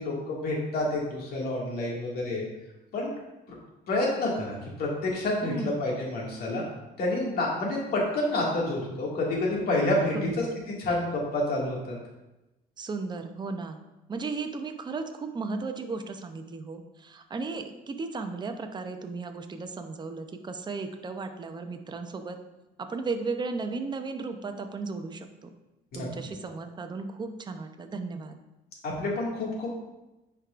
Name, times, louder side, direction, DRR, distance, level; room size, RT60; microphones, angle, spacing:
voice 1, 0.0-2.4 2.9-3.1 3.9-6.7 7.0-10.4 10.8-12.0 25.9-26.1 28.8-29.7, left 2 dB, 65° left, -3 dB, 2.1 m, -28 dB
voice 2, 5.4-5.8 10.1-10.5 12.8-13.8 14.1-22.4 22.8-25.5 25.9-28.4, right 4 dB, 25° right, 6 dB, 0.6 m, -35 dB
9.7 x 4.7 x 2.5 m, 1.0 s
cardioid pair, 110°, 17 cm